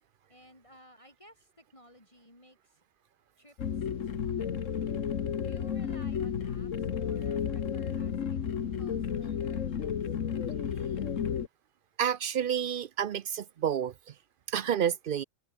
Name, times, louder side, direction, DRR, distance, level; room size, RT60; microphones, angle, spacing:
voice 1, 0.3-2.8 3.4-4.6 5.4-10.2, equal, 20° left, 7.6 m, -58 dB
sound 1, 3.6-11.5, left 7 dB, 70° left, 1.6 m, -32 dB
voice 2, 12.0-13.9 14.5-15.2, right 9 dB, 60° right, 0.5 m, -29 dB
omnidirectional pair, 1.4 m